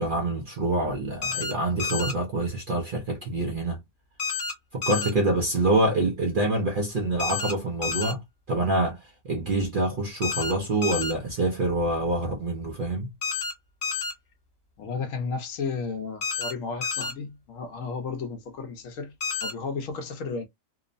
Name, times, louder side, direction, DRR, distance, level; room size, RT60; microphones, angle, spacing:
voice 1, 0.0-3.8 4.7-8.2 8.5-13.1, right 2 dB, 55° right, 0.6 m, -26 dB
sound 1, 1.2-1.5 1.8-2.1 4.2-4.5 4.8-5.1 7.2-7.5 7.8-8.1 10.2-10.5 10.8-11.1 13.2-13.5 13.8-14.1 16.2-16.5 16.8-17.1 19.2-19.5, left 5 dB, 40° left, 1.0 m, -29 dB
voice 2, 14.8-19.1 19.4-20.5, left 4 dB, 70° left, 1.0 m, -33 dB
2.9 x 2.0 x 2.5 m
omnidirectional pair, 1.5 m